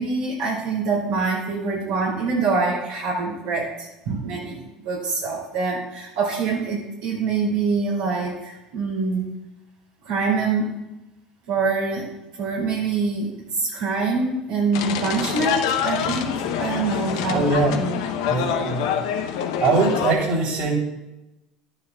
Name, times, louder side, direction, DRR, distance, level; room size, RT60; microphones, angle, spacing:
voice 1, 0.0-9.2 10.0-10.7 11.5-12.1 12.4-13.3 13.6-17.9, right 4 dB, 80° right, -6 dB, 2.7 m, -25 dB
sound 1, 14.7-20.1, left 8 dB, 80° left, 0.8 m, -26 dB
voice 2, 17.3-17.7 18.3-18.9 19.6-20.7, right 3 dB, 60° right, -1 dB, 3.3 m, -21 dB
12.0 x 9.8 x 2.3 m, 0.97 s
supercardioid pair, 90°, 3 cm